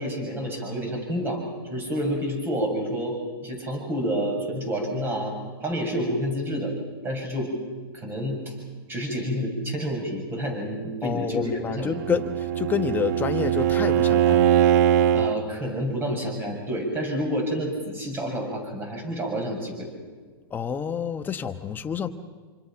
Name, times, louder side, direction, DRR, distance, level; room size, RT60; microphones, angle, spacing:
voice 1, 0.0-1.4 1.7-3.2 3.4-6.7 7.0-7.5 7.9-8.5 8.9-12.2 15.1-19.9, equal, 15° right, 2 dB, 7.2 m, -29 dB
voice 2, 11.0-14.5 20.5-22.1, left 7 dB, 15° left, 8 dB, 1.2 m, -28 dB
Bowed string instrument, 11.7-15.4, right 10 dB, 45° right, 1.0 m, -21 dB
27.5 x 25.5 x 5.9 m, 1.5 s
hypercardioid pair, 140°, 13 cm